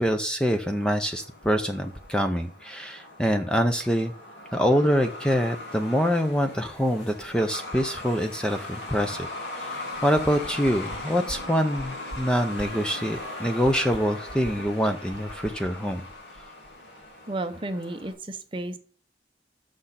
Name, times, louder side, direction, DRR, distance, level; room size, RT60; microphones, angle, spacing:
voice 1, 0.0-4.1 4.5-9.3 9.6-16.0, equal, 5° left, 6 dB, 0.5 m, -25 dB
Truck, 0.7-18.1, left 2 dB, 80° left, 2.3 m, -39 dB
sound 1, 9.9-11.0 11.3-11.4 11.7-12.2 12.5-12.7 13.1-13.3 13.6-14.7 15.1-16.7 17.0-17.1, right 1 dB, 30° left, 2.7 m, -41 dB
voice 2, 17.3-18.8, right 2 dB, 30° right, 8 dB, 0.7 m, -32 dB
6.5 x 6.1 x 5.7 m, 0.41 s
head